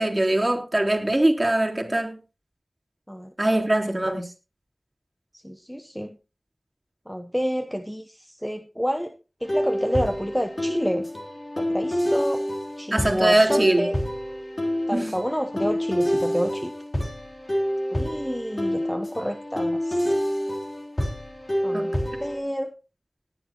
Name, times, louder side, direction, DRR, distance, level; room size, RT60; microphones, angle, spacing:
voice 1, 0.0-2.2 3.4-4.2 12.9-13.9 14.9-15.1 21.7-21.9, right 1 dB, 30° right, 3.2 m, -22 dB
voice 2, 5.4-6.2 7.1-9.1 9.4-11.1 11.6-12.4 12.8-13.9 14.9-16.7 17.9-20.1 21.6-22.0 22.2-22.7, equal, 5° left, 0.9 m, -29 dB
sound 1, 9.4-22.4, equal, 40° left, 3.3 m, -27 dB
18.5 x 10.5 x 3.0 m
wide cardioid pair, 55°, 0 cm